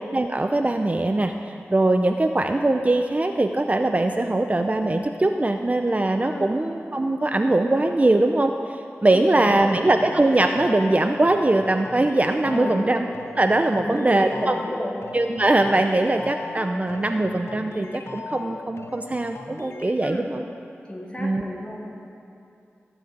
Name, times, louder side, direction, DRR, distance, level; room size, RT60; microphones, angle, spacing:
voice 1, 0.1-1.3 1.7-8.5 9.0-13.0 13.3-14.6 15.1-20.4 21.2-21.4, right 2 dB, 30° right, 5 dB, 0.5 m, -21 dB
voice 2, 6.2-6.5 9.1-9.8 10.1-10.2 12.5-12.8 13.8-15.0 20.0-20.3 20.8-21.8, left 1 dB, 20° left, -2 dB, 2.3 m, -33 dB
sound 1, 10.0-19.9, left 3 dB, 70° left, 0.8 m, -39 dB
16.0 x 6.0 x 8.1 m, 2.6 s
wide cardioid pair, 70°, 5 cm